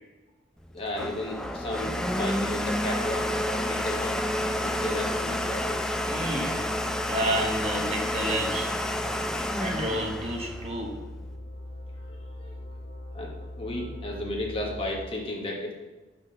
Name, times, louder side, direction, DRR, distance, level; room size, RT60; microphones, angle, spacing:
Domestic sounds home sounds, 0.6-11.3, left 1 dB, 5° left, 0.3 m, -30 dB
voice 1, 0.7-4.3 4.6-5.8 12.1-12.6 13.1-15.7, left 1 dB, 30° left, -1 dB, 1.2 m, -34 dB
sound 1, 1.4-14.9, left 1 dB, 60° left, 1.7 m, -40 dB
voice 2, 6.1-6.6 7.0-8.7 9.6-11.0, right 1 dB, 35° right, 1 dB, 1.0 m, -30 dB
6.0 x 4.3 x 6.3 m, 1.2 s
head